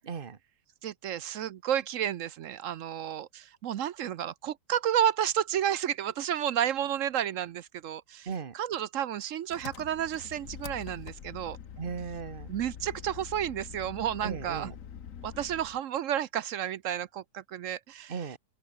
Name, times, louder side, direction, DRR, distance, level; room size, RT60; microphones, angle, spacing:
voice 1, 0.0-0.4 8.3-8.5 11.8-12.5 14.2-14.8 18.1-18.4, right 6 dB, 40° right, 1.1 m, -37 dB
voice 2, 0.8-8.3 8.5-11.6 12.5-14.7 15.2-18.1, right 10 dB, 65° right, 1.0 m, -31 dB
Engine, 9.5-15.8, left 8 dB, 60° left, 1.5 m, -45 dB
open air
omnidirectional pair, 1.6 m